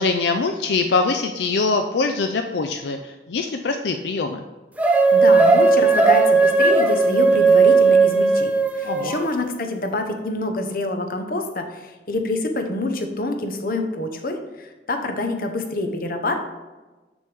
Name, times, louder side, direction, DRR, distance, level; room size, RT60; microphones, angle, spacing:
voice 1, 0.0-4.4 8.8-9.2, left 4 dB, 75° left, 6 dB, 0.4 m, -23 dB
sound 1, 4.8-9.3, right 4 dB, 10° right, 0.5 m, -16 dB
voice 2, 5.1-16.4, left 2 dB, 50° left, 5 dB, 0.8 m, -26 dB
7.1 x 6.3 x 3.4 m, 1.2 s
head